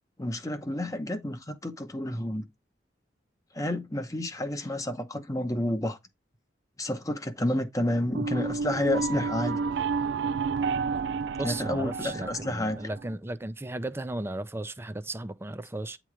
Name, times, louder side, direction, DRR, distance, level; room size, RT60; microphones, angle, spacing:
voice 1, 0.2-2.5 3.5-6.0 6.8-9.6 11.4-12.8, left 1 dB, 20° left, 0.8 m, -30 dB
sound 1, 8.1-13.1, right 5 dB, 80° right, 0.4 m, -31 dB
voice 2, 11.4-16.0, right 2 dB, 15° right, 0.5 m, -35 dB
9.1 x 3.0 x 4.9 m
head